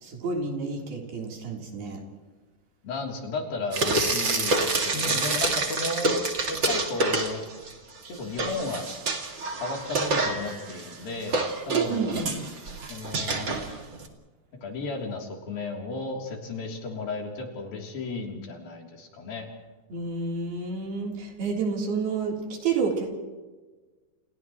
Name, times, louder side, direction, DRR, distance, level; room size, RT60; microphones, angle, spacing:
voice 1, 0.0-2.0 4.9-5.2 11.9-12.4 19.9-23.1, right 4 dB, 75° right, -1 dB, 5.7 m, -30 dB
voice 2, 2.8-6.2 6.5-7.4 8.1-8.9 9.6-12.3 12.9-13.6 14.6-19.5, left 3 dB, 70° left, 0 dB, 5.2 m, -34 dB
Frying (food), 3.7-7.7 8.1-14.1, right 2 dB, 35° right, 2.5 m, -27 dB
29.5 x 29.5 x 3.2 m, 1.3 s
omnidirectional pair, 4.4 m